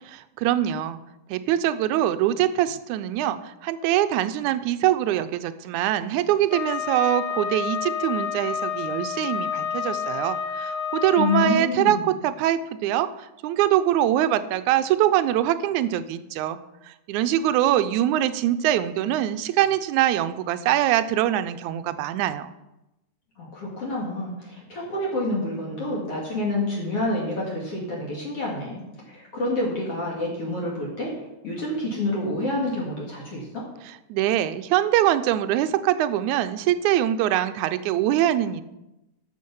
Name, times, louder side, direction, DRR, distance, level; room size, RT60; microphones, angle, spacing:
voice 1, 0.4-1.0 1.3-16.6 16.8-22.5 34.1-38.6, right 12 dB, 80° right, 12 dB, 1.9 m, -23 dB
Wind instrument woodwind instrument, 6.5-11.6, left 7 dB, 80° left, 2.1 m, -29 dB
voice 2, 11.2-12.0 23.4-28.8 29.1-33.6, left 2 dB, 50° left, -2 dB, 2.9 m, -28 dB
13.0 x 6.5 x 5.4 m, 0.94 s
omnidirectional pair, 3.6 m